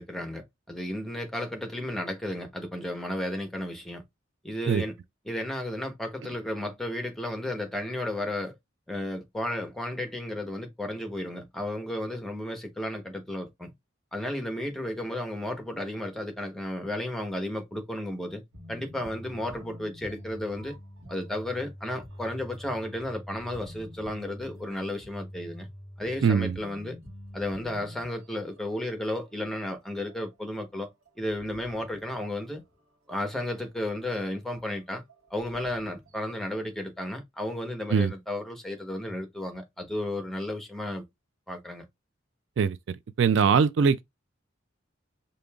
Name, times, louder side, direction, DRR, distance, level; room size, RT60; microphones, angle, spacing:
voice 1, 0.0-4.0 4.4-4.9 5.2-8.5 8.9-13.7 14.1-18.4 18.7-20.7 21.1-25.7 26.0-27.0 27.3-30.9 31.2-32.6 33.1-35.0 35.3-41.0 41.5-41.8, left 1 dB, ahead, 0.9 m, -33 dB
sound 1, 18.5-28.8 29.0-29.3 29.6-29.7 30.1-32.7 33.1-33.6 34.1-34.2 34.6-36.5, equal, 85° right, 1.5 m, -46 dB
voice 2, 26.2-26.5 37.9-38.1 42.6-42.8 43.2-44.0, right 6 dB, 65° right, 0.3 m, -21 dB
5.1 x 2.8 x 2.3 m
head